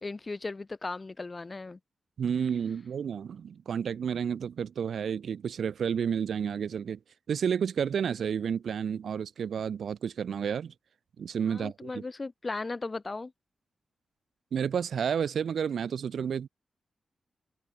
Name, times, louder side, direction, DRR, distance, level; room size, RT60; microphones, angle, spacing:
voice 1, 0.0-1.8 11.5-13.3, left 3 dB, 30° left, 3.9 m, -37 dB
voice 2, 2.2-7.0 7.3-10.7 11.2-12.0 14.5-16.5, right 7 dB, 75° right, 2.0 m, -31 dB
wide cardioid pair, 130°, 0 cm